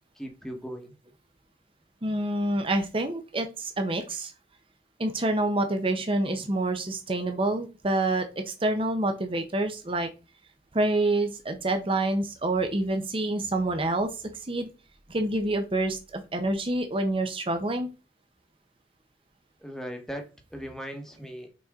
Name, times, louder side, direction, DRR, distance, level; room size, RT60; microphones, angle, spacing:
voice 1, 0.2-0.9 19.6-21.5, equal, 5° left, 1.1 m, -38 dB
voice 2, 2.0-4.3 5.0-10.1 10.7-14.7 15.1-17.9, right 2 dB, 30° right, 0.8 m, -27 dB
6.2 x 4.3 x 3.6 m
head